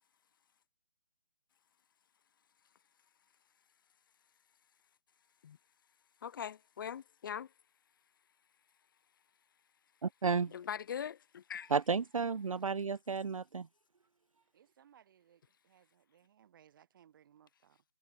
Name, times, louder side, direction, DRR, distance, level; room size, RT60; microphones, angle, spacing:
voice 1, 6.2-7.5 10.5-11.7, left 8 dB, 35° left, 1.8 m, -41 dB
voice 2, 10.0-10.5 11.7-13.7, right 5 dB, 60° right, 0.8 m, -32 dB
voice 3, 14.5-17.8, right 9 dB, 35° right, 7.8 m, -65 dB
figure-of-eight pair, 145°, 19 cm